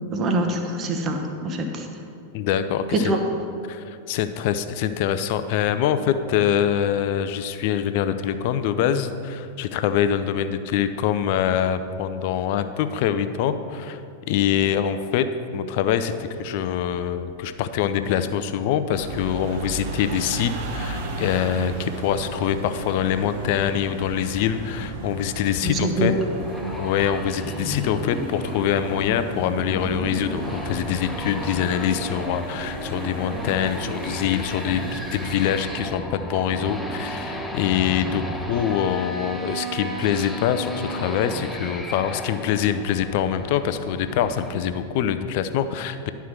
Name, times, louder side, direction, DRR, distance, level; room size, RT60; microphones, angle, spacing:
voice 1, 0.0-1.9 2.9-3.2 25.6-26.3, right 1 dB, 30° right, 4 dB, 1.0 m, -24 dB
voice 2, 2.3-3.1 3.7-14.0 14.3-15.3 15.5-26.1 26.8-46.1, left 9 dB, 50° left, 11 dB, 0.5 m, -24 dB
sound 1, 18.9-35.7, right 3 dB, 50° right, 0.9 m, -35 dB
sound 2, 26.2-44.6, left 1 dB, 5° left, 0.8 m, -33 dB
11.0 x 4.6 x 5.9 m, 2.5 s
figure-of-eight pair, 90°, 0 cm